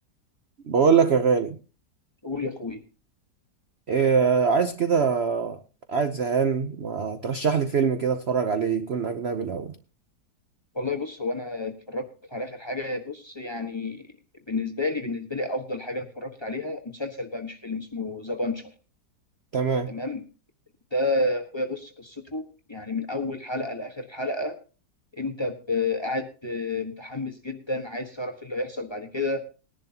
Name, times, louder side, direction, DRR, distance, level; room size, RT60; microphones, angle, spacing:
voice 1, 0.7-1.6 3.9-5.6 5.9-9.8 19.5-19.9, right 6 dB, 55° right, 0.7 m, -23 dB
voice 2, 2.2-2.8 10.7-14.1 14.5-18.7 19.9-20.2 20.9-24.6 25.1-29.4, left 2 dB, 20° left, 1.1 m, -30 dB
20.0 x 10.5 x 2.8 m
omnidirectional pair, 1.9 m